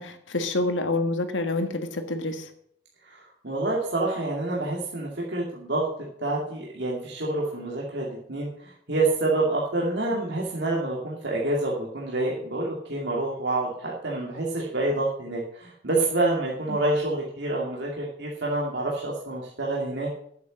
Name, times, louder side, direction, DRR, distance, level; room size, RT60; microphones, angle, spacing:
voice 1, 0.0-2.5 16.7-16.8, left 2 dB, 80° left, 6 dB, 1.5 m, -27 dB
voice 2, 3.1-20.1, right 2 dB, 65° right, -3 dB, 2.5 m, -27 dB
11.0 x 8.2 x 6.4 m, 0.67 s
head